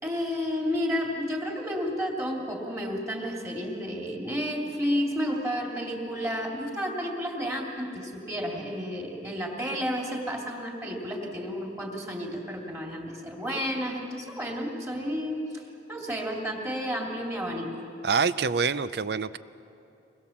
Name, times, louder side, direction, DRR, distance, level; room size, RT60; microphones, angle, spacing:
voice 1, 0.0-17.7, equal, 15° right, 0 dB, 2.8 m, -31 dB
voice 2, 18.0-19.4, right 5 dB, 60° right, 15 dB, 0.5 m, -26 dB
24.5 x 20.5 x 7.2 m, 2.7 s
head